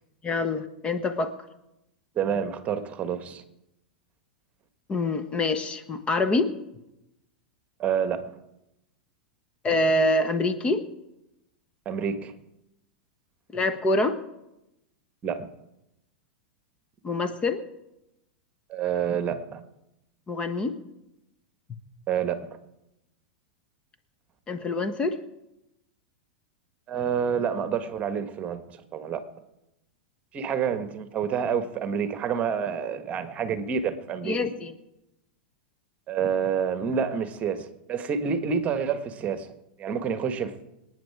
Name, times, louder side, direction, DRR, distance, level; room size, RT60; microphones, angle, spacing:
voice 1, 0.2-1.3 4.9-6.5 9.6-10.8 13.5-14.2 17.0-17.6 20.3-20.7 24.5-25.2 34.2-34.7, left 2 dB, 20° left, 11 dB, 1.3 m, -25 dB
voice 2, 2.1-3.4 7.8-8.3 11.8-12.3 15.2-15.5 18.7-19.6 22.1-22.5 26.9-29.2 30.3-34.5 36.1-39.5 39.8-40.6, right 7 dB, 30° right, 10 dB, 1.5 m, -28 dB
26.0 x 9.4 x 4.9 m, 0.90 s
hypercardioid pair, 100°, 5 cm